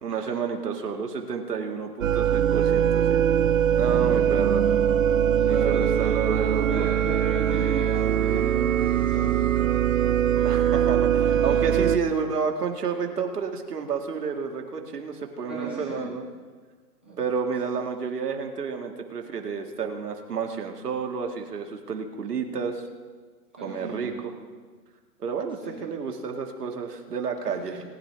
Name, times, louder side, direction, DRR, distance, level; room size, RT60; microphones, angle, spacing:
voice 1, 0.0-3.2 3.8-4.7 5.5-6.8 10.4-16.2 17.2-22.8 23.6-24.1 25.2-27.8, right 5 dB, 75° right, 4 dB, 1.9 m, -30 dB
sound 1, 2.0-12.0, right 9 dB, 60° right, 0.6 m, -22 dB
voice 2, 3.8-4.2 5.3-6.2 6.6-9.4 11.3-11.7 15.4-16.0 17.0-17.2 23.5-24.2 25.6-25.8 27.4-27.8, right 2 dB, 5° right, -8 dB, 0.6 m, -36 dB
19.5 x 10.5 x 3.4 m, 1.5 s
hypercardioid pair, 175°, 47 cm